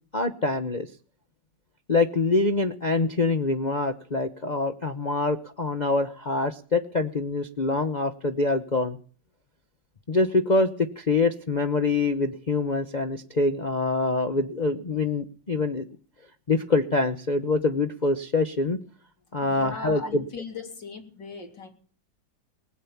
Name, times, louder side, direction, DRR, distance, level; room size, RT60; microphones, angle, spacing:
voice 1, 0.1-0.9 1.9-9.0 10.1-15.9 16.5-18.8 19.3-20.2, left 3 dB, 30° left, 5 dB, 0.8 m, -25 dB
voice 2, 19.4-21.7, left 4 dB, 75° left, 5 dB, 3.9 m, -39 dB
20.0 x 9.7 x 7.1 m, 0.42 s
omnidirectional pair, 2.0 m